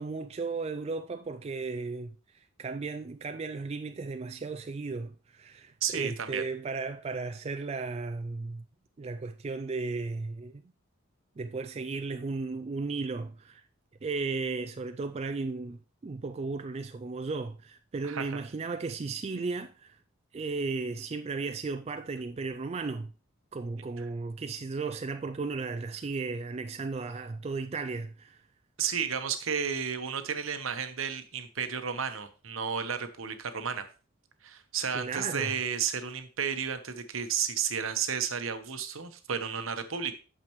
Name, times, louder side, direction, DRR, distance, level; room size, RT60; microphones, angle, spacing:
voice 1, 0.0-8.6 9.0-10.6 11.4-13.6 14.0-20.0 20.3-23.1 23.5-28.4 34.9-35.5, right 4 dB, 30° right, 0.3 m, -35 dB
voice 2, 5.8-6.4 18.0-18.3 28.8-33.8 34.4-40.1, right 7 dB, 70° right, 1.0 m, -32 dB
8.7 x 6.7 x 3.1 m
head